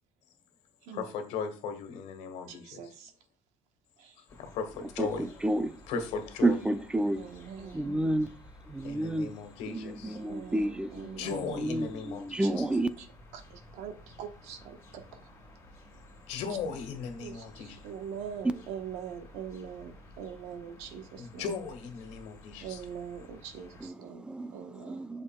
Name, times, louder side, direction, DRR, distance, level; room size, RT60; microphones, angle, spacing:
voice 1, 0.9-2.9 4.4-5.2 5.9-6.6 8.8-10.2 11.2-12.6 16.3-17.8 21.2-22.8, left 5 dB, 75° left, 1.6 m, -37 dB
voice 2, 2.5-3.1 4.0-4.1 7.2-7.9 10.0-11.5 13.3-15.0 17.2-21.5 22.6-24.3 24.5-25.0, right 8 dB, 90° right, 1.1 m, -43 dB
sound 1, 4.3-23.9, left 1 dB, 25° left, 2.8 m, -54 dB
voice 3, 5.0-5.8 6.4-7.3 7.6-8.3 8.7-9.3 9.7-12.9 23.8-25.2, right 1 dB, 10° right, 0.4 m, -31 dB
7.4 x 6.4 x 2.2 m
cardioid pair, 145°, 11 cm